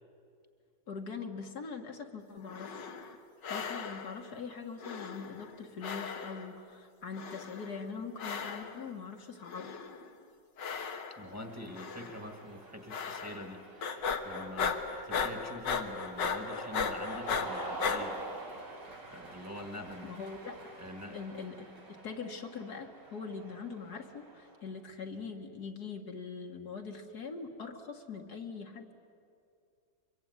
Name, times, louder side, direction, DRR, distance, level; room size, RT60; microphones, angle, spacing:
voice 1, 0.9-2.9 3.5-9.7 20.0-20.6 21.1-28.9, left 5 dB, 65° left, 3 dB, 2.1 m, -42 dB
sound 1, 2.4-3.2 3.4-4.2 4.8-5.6 5.8-6.6 7.1-7.8 8.2-8.8 9.4-10.1 10.6-11.4 11.8-12.2 12.9-13.5 13.8-18.0, left 5 dB, 85° left, 2.1 m, -36 dB
voice 2, 11.2-18.2 19.1-20.1 20.8-21.2, left 1 dB, 10° right, 5 dB, 1.7 m, -45 dB
Cheering, 11.2-24.7, right 3 dB, 75° right, 4.7 m, -47 dB
24.0 x 23.0 x 9.6 m, 2.4 s
omnidirectional pair, 1.9 m